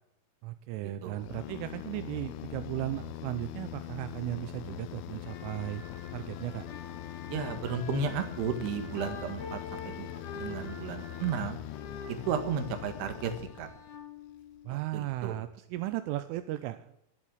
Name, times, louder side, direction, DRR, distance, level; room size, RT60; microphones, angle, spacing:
voice 1, 0.4-5.8 6.1-6.7 14.7-16.9, right 15 dB, 85° right, 10 dB, 3.2 m, -36 dB
sound 1, 1.2-14.0, left 13 dB, 80° left, 3.1 m, -42 dB
sound 2, 5.1-14.9, left 5 dB, 60° left, 3.4 m, -47 dB
voice 2, 7.3-11.6 12.1-13.3 13.6-13.7 14.9-15.4, right 6 dB, 65° right, 6 dB, 3.4 m, -33 dB
21.5 x 7.5 x 6.4 m, 0.77 s
omnidirectional pair, 5.7 m